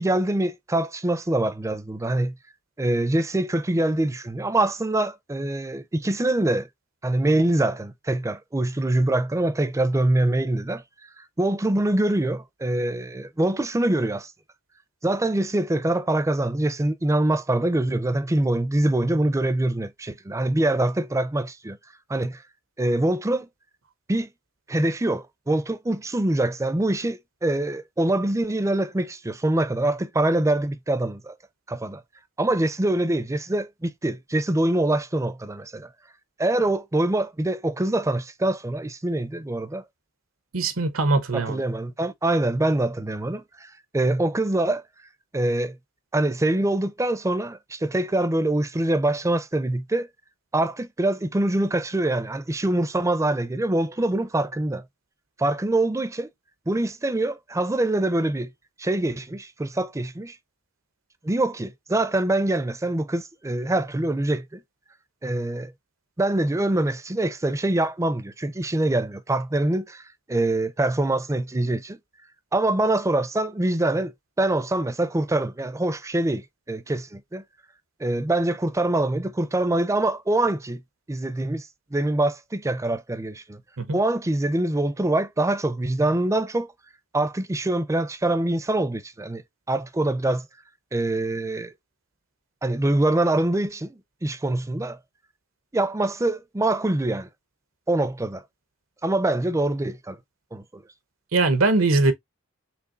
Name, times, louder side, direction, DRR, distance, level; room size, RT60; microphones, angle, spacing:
voice 1, 0.0-2.4 2.8-6.7 7.0-10.8 11.4-14.3 15.0-21.8 22.1-22.4 22.8-23.5 24.1-24.3 24.7-31.3 31.7-32.0 32.4-35.9 36.4-39.8 41.3-43.7 43.9-44.8 45.3-45.8 46.1-50.1 50.5-54.8 55.4-56.3 56.7-58.5 58.8-60.4 61.2-64.6 65.2-65.7 66.2-70.0 70.3-72.0 72.5-77.4 78.0-80.8 81.1-83.6 83.9-86.7 87.1-89.4 89.7-90.5 90.9-91.7 92.6-95.0 95.7-97.3 97.9-98.4 99.0-100.2 100.5-100.8, right 1 dB, 15° right, 0.5 m, -24 dB
voice 2, 40.5-41.6 83.8-84.0 101.3-102.1, right 3 dB, 85° right, 1.1 m, -21 dB
6.0 x 3.5 x 2.5 m
head